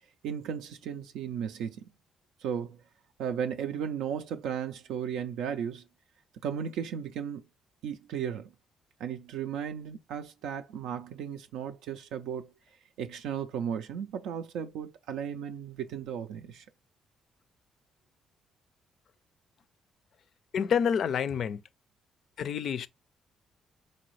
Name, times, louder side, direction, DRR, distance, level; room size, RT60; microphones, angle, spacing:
voice 1, 0.2-1.9 2.4-2.8 3.2-5.8 6.4-7.4 7.8-8.5 9.0-12.5 13.0-16.6, right 8 dB, 90° right, 0.4 m, -35 dB
voice 2, 20.5-21.6 22.4-22.9, left 7 dB, 60° left, 0.4 m, -28 dB
4.0 x 2.7 x 3.0 m
cardioid pair, 90°, 0 cm